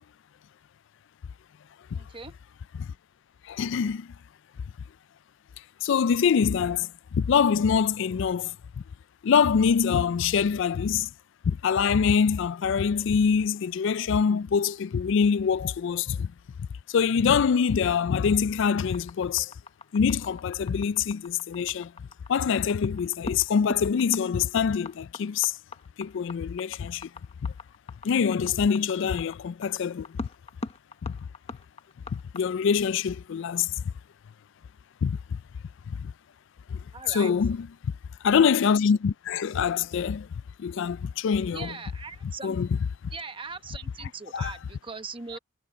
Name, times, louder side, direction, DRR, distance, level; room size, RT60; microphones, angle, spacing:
voice 1, 1.9-2.3 36.9-37.3 41.5-42.6 43.1-45.4, right 4 dB, 25° right, 1.2 m, -40 dB
voice 2, 3.4-4.1 5.8-8.6 9.2-11.1 11.4-16.3 16.9-19.5 19.9-21.9 22.3-25.6 26.0-27.1 27.4-27.5 28.0-30.2 31.0-31.1 32.1-33.8 35.0-35.4 35.9-36.1 36.7-36.8 37.1-37.7 38.2-40.3 40.6-41.7 42.2-42.7 44.3-44.5, left 6 dB, 60° left, 0.4 m, -25 dB
sound 1, 18.8-32.4, left 2 dB, 30° left, 1.0 m, -40 dB
head